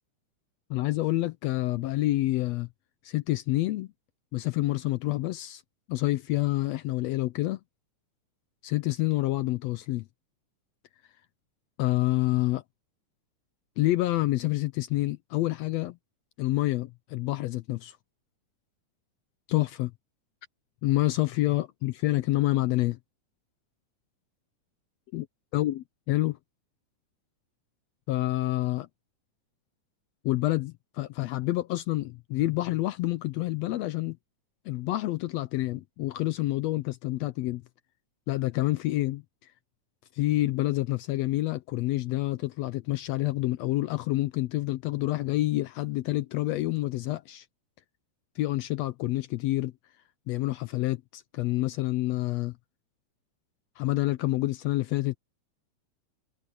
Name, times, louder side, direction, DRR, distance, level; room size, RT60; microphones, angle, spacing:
voice 1, 0.7-2.7 3.0-3.9 4.3-5.6 5.9-7.6 8.6-10.0 11.8-12.6 13.8-16.0 16.4-18.0 19.5-19.9 20.8-23.0 25.1-25.3 25.5-26.4 28.1-28.9 30.2-34.2 34.7-37.6 38.3-39.2 40.1-47.4 48.4-49.7 50.3-52.5 53.8-55.2, left 17 dB, 80° left, 1.5 m, -28 dB
omnidirectional pair, 3.5 m